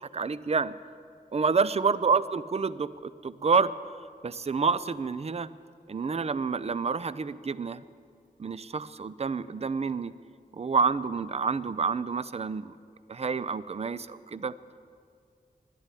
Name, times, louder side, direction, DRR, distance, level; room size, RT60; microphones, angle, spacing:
voice 1, 0.0-0.7 1.3-3.7 4.2-5.5 5.9-7.8 8.4-10.1 10.5-12.8 13.1-14.5, right 5 dB, 40° right, 16 dB, 0.4 m, -28 dB
11.5 x 11.5 x 9.9 m, 2.3 s
wide cardioid pair, 55°, 16 cm